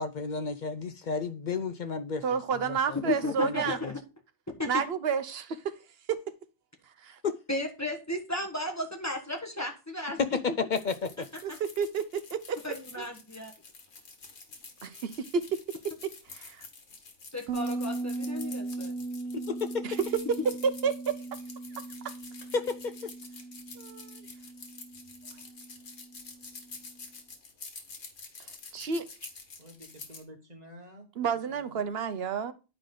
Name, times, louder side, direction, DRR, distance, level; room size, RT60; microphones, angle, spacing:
voice 1, 0.0-2.2 2.7-3.6 3.8-3.9 7.2-7.3 10.2-11.1 19.3-20.0 22.5-23.1, left 5 dB, 60° left, 0.5 m, -32 dB
voice 2, 2.2-3.8 4.7-5.7 6.1-6.2 7.0-7.2 11.4-12.6 13.0-13.1 14.8-15.6 16.3-16.7 19.8-21.2 23.8-24.2 28.7-29.0 31.2-32.5, right 6 dB, 60° right, 0.9 m, -30 dB
voice 3, 3.1-4.0 4.6-4.8 7.5-10.4 11.5-11.6 12.6-13.5 17.3-18.9, left 2 dB, 15° left, 1.3 m, -34 dB
sound 1, 10.7-30.2, left 4 dB, 90° left, 1.8 m, -48 dB
Bass guitar, 17.5-26.8, right 3 dB, 85° right, 1.3 m, -38 dB
voice 4, 29.6-31.8, equal, 35° right, 1.6 m, -50 dB
9.8 x 4.9 x 3.8 m
omnidirectional pair, 1.2 m